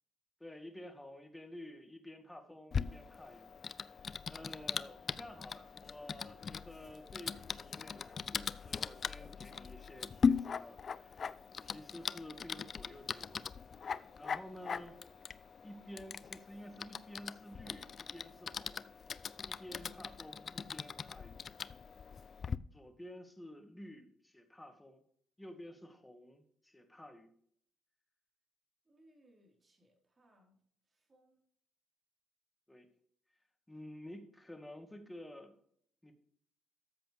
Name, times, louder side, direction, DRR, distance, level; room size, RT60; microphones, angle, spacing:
voice 1, 0.4-3.5 4.0-11.4 11.6-13.4 14.2-15.0 15.6-18.9 19.4-21.4 22.7-25.0 25.4-27.3 32.7-32.9 33.7-35.6 36.0-36.1, left 1 dB, 10° left, 5 dB, 2.0 m, -51 dB
Typing, 2.7-22.6, left 6 dB, 45° left, 0.4 m, -40 dB
voice 2, 28.8-31.4, equal, 30° right, 0 dB, 4.4 m, -68 dB
13.5 x 7.7 x 3.5 m, 0.64 s
cardioid pair, 90°, 0 cm